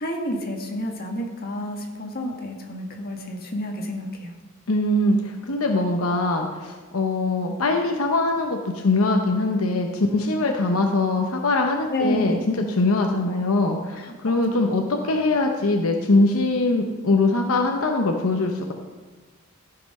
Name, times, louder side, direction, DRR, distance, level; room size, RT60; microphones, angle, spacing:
voice 1, 0.0-4.3 11.9-12.4 14.0-14.4 14.7-14.8, left 1 dB, 45° left, 1 dB, 1.6 m, -30 dB
voice 2, 4.7-8.6 8.8-18.7, left 2 dB, 75° left, 2 dB, 0.9 m, -22 dB
14.0 x 5.9 x 5.4 m, 1.3 s
head